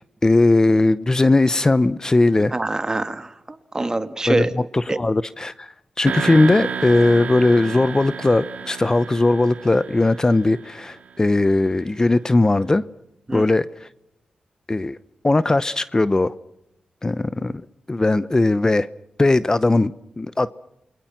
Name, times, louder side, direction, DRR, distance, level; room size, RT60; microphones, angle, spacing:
voice 1, 0.2-2.5 4.3-12.8 13.3-13.9 14.7-15.0 15.2-16.3 17.0-18.9 19.2-20.5, left 2 dB, 25° left, 16 dB, 0.8 m, -19 dB
voice 2, 2.5-4.5 4.9-5.0 13.3-13.5, right 2 dB, 25° right, 11 dB, 2.0 m, -24 dB
sound 1, 6.1-11.0, right 6 dB, 70° right, 2.7 m, -31 dB
29.0 x 22.5 x 6.1 m, 0.82 s
cardioid pair, 70°, 3 cm